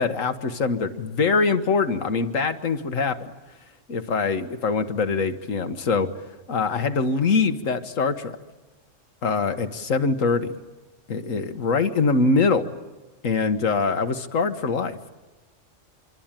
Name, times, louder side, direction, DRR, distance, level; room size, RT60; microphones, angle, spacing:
voice 1, 0.0-3.3 3.9-6.1 6.5-8.4 9.2-10.5 11.1-12.7 13.2-15.1, left 4 dB, 85° left, 9 dB, 1.7 m, -23 dB
26.0 x 24.5 x 9.0 m, 1.1 s
omnidirectional pair, 1.3 m